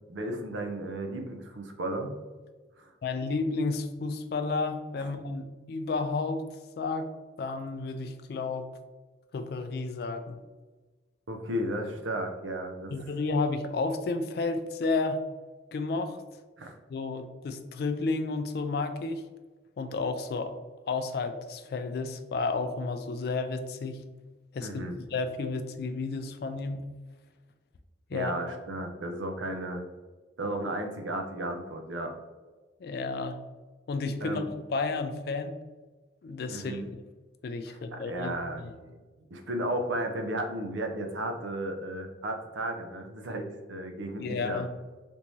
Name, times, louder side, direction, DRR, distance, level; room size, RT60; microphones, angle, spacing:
voice 1, 0.1-2.2 2.8-2.9 5.0-5.1 11.3-12.9 16.6-16.8 24.6-25.0 28.1-29.8 30.4-32.1 34.2-34.4 36.5-36.9 37.7-39.0 39.3-44.6, right 1 dB, 85° right, 5 dB, 0.5 m, -34 dB
voice 2, 3.0-6.5 6.8-7.1 7.4-8.7 9.3-10.4 12.9-15.2 15.7-16.2 16.9-19.2 19.8-20.5 20.9-24.0 24.5-26.8 28.1-28.3 32.8-33.4 33.9-35.5 36.2-36.8 37.4-38.3 44.2-44.7, left 3 dB, 55° left, 8 dB, 0.3 m, -31 dB
3.5 x 2.6 x 3.0 m, 1.3 s
head